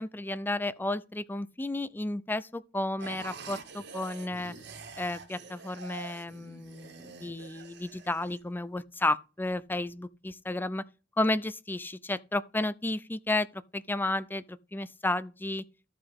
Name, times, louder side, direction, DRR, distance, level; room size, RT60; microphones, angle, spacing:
voice 1, 0.0-4.6 5.0-10.9 11.2-15.7, left 2 dB, 10° left, 0.4 m, -32 dB
sound 1, 3.0-8.4, right 4 dB, 60° right, 1.7 m, -46 dB
13.5 x 4.9 x 3.5 m
head